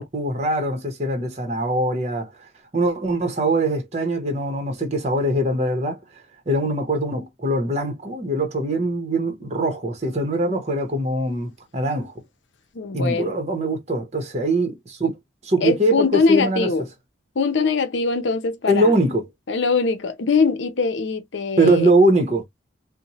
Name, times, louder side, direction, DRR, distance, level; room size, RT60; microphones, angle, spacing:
voice 1, 0.0-2.5 2.7-6.0 6.5-12.1 12.9-15.2 15.4-16.7 18.7-19.2 21.6-22.4, right 1 dB, 35° right, 0.8 m, -22 dB
voice 2, 12.7-13.3 15.6-16.9 17.4-18.9 19.5-21.9, left 4 dB, 70° left, 0.6 m, -22 dB
4.1 x 2.1 x 2.9 m
head